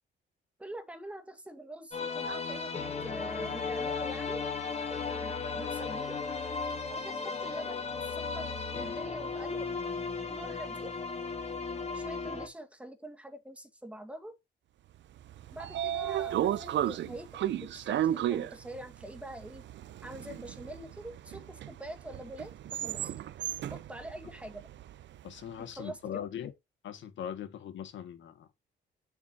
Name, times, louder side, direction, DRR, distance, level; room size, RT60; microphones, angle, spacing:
voice 1, 0.6-4.4 5.1-6.2 6.9-9.7 10.3-10.9 11.9-14.3 15.5-19.6 20.0-23.1 23.7-24.6 25.6-26.2, right 1 dB, 5° right, 2.1 m, -45 dB
sound 1, 1.9-12.5, left 4 dB, 35° left, 2.5 m, -35 dB
Train / Sliding door, 15.2-25.3, right 11 dB, 65° right, 0.7 m, -34 dB
voice 2, 25.2-26.5 26.8-28.6, left 9 dB, 70° left, 1.9 m, -40 dB
8.1 x 7.1 x 2.8 m
cardioid pair, 90°, 20 cm